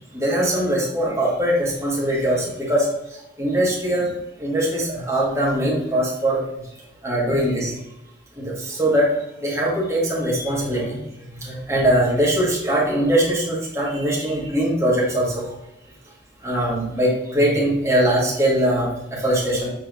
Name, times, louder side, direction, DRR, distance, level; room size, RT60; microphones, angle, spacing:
voice 1, 0.1-4.1 4.4-6.4 7.0-7.7 8.4-9.1 9.4-11.0 11.3-15.5 16.4-19.7, right 1 dB, 15° right, -6 dB, 2.1 m, -21 dB
6.9 x 4.1 x 4.0 m, 0.88 s
head